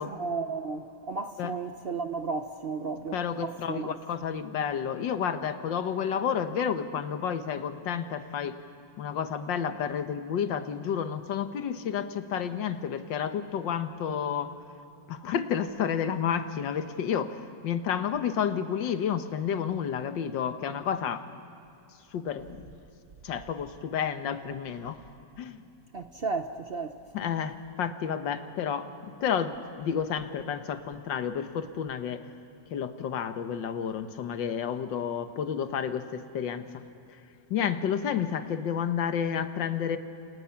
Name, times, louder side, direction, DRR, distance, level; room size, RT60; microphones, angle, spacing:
voice 1, 0.0-3.9 25.9-27.0, right 4 dB, 60° right, 0.6 m, -34 dB
voice 2, 3.1-8.6 9.0-14.5 15.1-21.3 22.1-22.5 23.2-25.0 25.4-25.6 27.1-32.3 32.7-36.8 37.1-37.2 37.5-40.0, left 8 dB, 75° left, 1.8 m, -30 dB
28.5 x 28.5 x 5.9 m
omnidirectional pair, 2.0 m